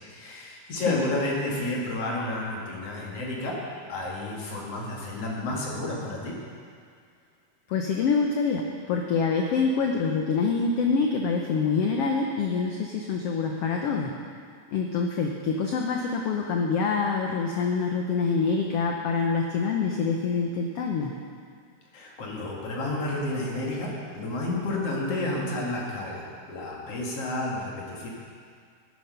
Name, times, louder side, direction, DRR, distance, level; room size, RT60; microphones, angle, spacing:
voice 1, 0.1-3.6 3.9-6.3 21.9-28.1, left 2 dB, 50° left, -3 dB, 2.7 m, -31 dB
voice 2, 7.7-14.1 14.7-21.1, left 5 dB, 90° left, 1 dB, 1.3 m, -26 dB
12.5 x 9.4 x 5.6 m, 2.2 s
omnidirectional pair, 3.8 m